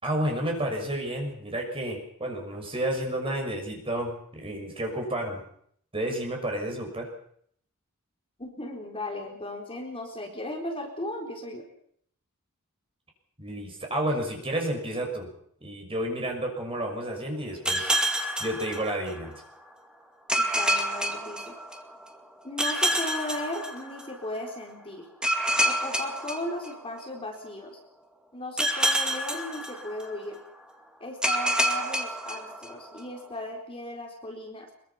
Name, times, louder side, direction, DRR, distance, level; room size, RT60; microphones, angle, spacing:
voice 1, 0.0-5.4 5.9-7.1 13.4-15.3 15.6-18.0 18.4-19.4, right 1 dB, 25° right, 2 dB, 6.3 m, -31 dB
voice 2, 8.4-11.7 20.4-21.6 22.4-25.1 25.6-27.8 28.3-30.4 31.0-34.7, left 1 dB, 25° left, 1 dB, 4.1 m, -36 dB
sound 1, 17.6-19.4 20.3-22.0 22.6-24.3 25.2-27.2 28.6-30.4 31.2-33.0, right 1 dB, 5° right, 2.3 m, -28 dB
24.0 x 23.0 x 5.9 m, 0.66 s
head